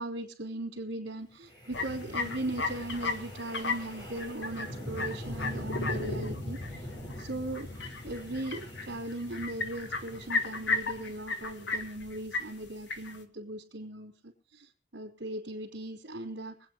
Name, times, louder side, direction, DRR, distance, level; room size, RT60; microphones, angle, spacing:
voice 1, 0.0-6.6 7.2-16.5, right 1 dB, 65° right, -5 dB, 3.2 m, -38 dB
Wind, 1.5-11.7, left 1 dB, 20° left, 3.7 m, -42 dB
sound 1, 1.7-13.2, left 3 dB, 60° left, 1.7 m, -36 dB
23.0 x 9.1 x 4.5 m, 0.40 s
head